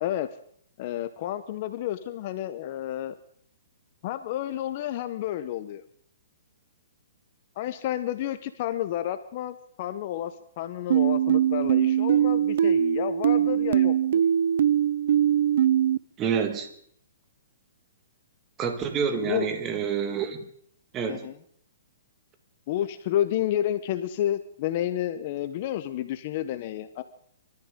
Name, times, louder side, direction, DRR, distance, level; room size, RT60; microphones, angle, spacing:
voice 1, 0.8-3.1 4.0-5.8 7.6-14.0 19.1-19.5 21.1-21.3 22.7-27.0, left 12 dB, 35° left, 11 dB, 0.9 m, -30 dB
sound 1, 10.9-16.0, right 10 dB, 60° right, 0.6 m, -22 dB
voice 2, 16.2-16.7 18.6-20.4 20.9-21.3, right 7 dB, 20° right, 7 dB, 1.8 m, -28 dB
26.5 x 13.5 x 3.7 m, 0.63 s
hypercardioid pair, 165°, 0 cm